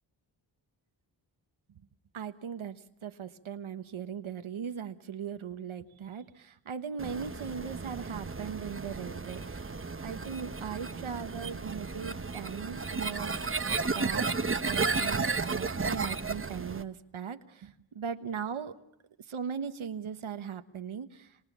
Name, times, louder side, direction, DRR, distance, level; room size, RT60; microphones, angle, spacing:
voice 1, 2.1-9.7 10.0-13.4 13.8-14.4 14.7-18.8 19.2-21.4, right 7 dB, 85° right, 8 dB, 1.3 m, -39 dB
sound 1, 7.0-16.8, right 4 dB, 25° right, 1.0 m, -33 dB
27.0 x 26.5 x 7.3 m, 0.84 s
cardioid pair, 65°, 48 cm